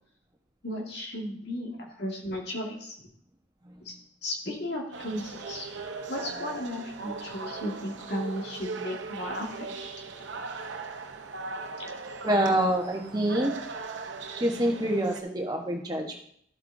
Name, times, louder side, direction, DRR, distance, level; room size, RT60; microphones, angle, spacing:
voice 1, 0.6-2.9 3.8-3.9 4.2-5.7 6.1-9.7 11.8-11.9, left 1 dB, 65° left, 0 dB, 2.0 m, -35 dB
voice 2, 3.6-4.0 12.2-13.5 14.3-16.2, right 1 dB, 20° right, 1 dB, 1.2 m, -27 dB
sound 1, 4.9-15.2, right 4 dB, 90° right, 0.9 m, -39 dB
12.5 x 7.8 x 2.7 m, 0.66 s
head